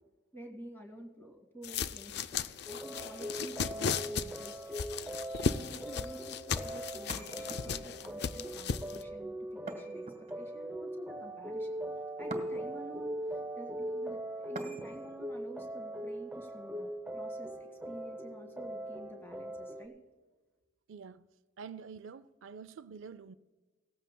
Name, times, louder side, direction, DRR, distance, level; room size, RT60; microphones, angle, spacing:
voice 1, 0.3-4.9 5.4-10.0 10.4-11.8 12.2-19.9, equal, 10° left, 2.0 m, -50 dB
sound 1, 1.6-9.0, left 6 dB, 55° left, 0.4 m, -36 dB
sound 2, 2.7-19.9, right 1 dB, 10° right, 0.5 m, -41 dB
sound 3, 7.1-8.0 9.7-10.6 12.3-12.9 14.6-15.2, right 2 dB, 35° right, 1.5 m, -45 dB
voice 2, 20.9-21.3 21.6-23.3, right 6 dB, 75° right, 0.4 m, -47 dB
18.0 x 14.5 x 2.2 m
head